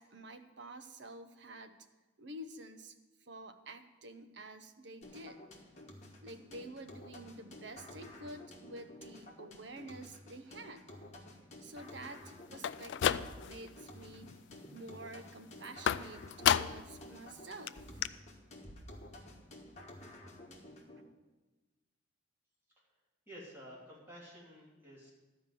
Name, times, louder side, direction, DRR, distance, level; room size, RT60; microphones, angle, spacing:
voice 1, 0.0-1.7 2.2-3.0 3.2-5.4 6.2-11.1 11.6-14.3 14.7-18.0, right 1 dB, 70° right, 8 dB, 0.8 m, -49 dB
sound 1, 5.0-21.0, left 1 dB, 35° left, 1.5 m, -52 dB
sound 2, 12.5-13.7 14.1-14.6 15.9-17.0 17.3-17.4 17.7-17.8 18.0-18.1, left 9 dB, 70° left, 0.3 m, -32 dB
voice 2, 23.3-25.1, equal, 10° right, -7 dB, 3.1 m, -51 dB
12.0 x 5.0 x 7.6 m, 1.1 s
head